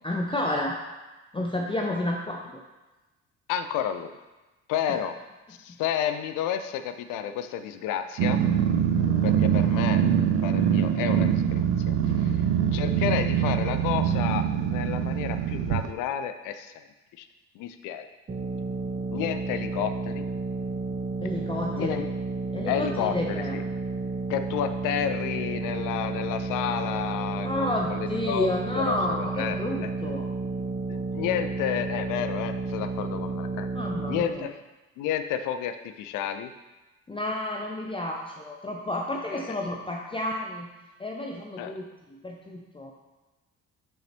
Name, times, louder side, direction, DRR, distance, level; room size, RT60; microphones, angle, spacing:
voice 1, 0.0-0.8 1.3-2.6 4.9-5.0 5.7-5.8 9.0-9.3 21.2-22.1 22.5-23.6 27.4-30.3 33.7-34.5 37.1-40.7 41.0-42.9, left 1 dB, 15° left, 0 dB, 0.7 m, -31 dB
voice 2, 3.5-4.1 4.7-5.2 5.6-8.4 9.2-10.0 10.4-12.4 12.7-16.7 17.2-17.3 17.6-18.1 19.1-20.2 21.7-22.0 22.7-23.1 23.5-23.6 24.3-28.5 28.7-29.9 30.9-33.7 34.1-34.5 35.0-36.5 39.3-39.6 41.6-41.8, left 9 dB, 50° left, 9 dB, 0.6 m, -31 dB
Growling, 8.2-15.9, right 9 dB, 50° right, 0.6 m, -24 dB
sound 1, 18.3-34.2, right 3 dB, 25° right, 1.0 m, -31 dB
5.9 x 5.5 x 4.3 m, 1.1 s
figure-of-eight pair, 45°, 41 cm